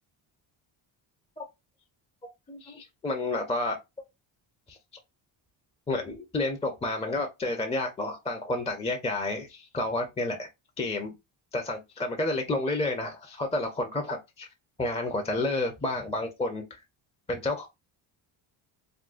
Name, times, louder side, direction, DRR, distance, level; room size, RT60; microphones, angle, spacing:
voice 1, 2.5-3.8 4.7-4.8 5.9-10.5 10.8-11.1 11.5-14.5 14.8-16.6 17.3-17.7, left 2 dB, 15° left, 0.4 m, -30 dB
3.6 x 2.2 x 2.4 m
cardioid pair, 100°, 49 cm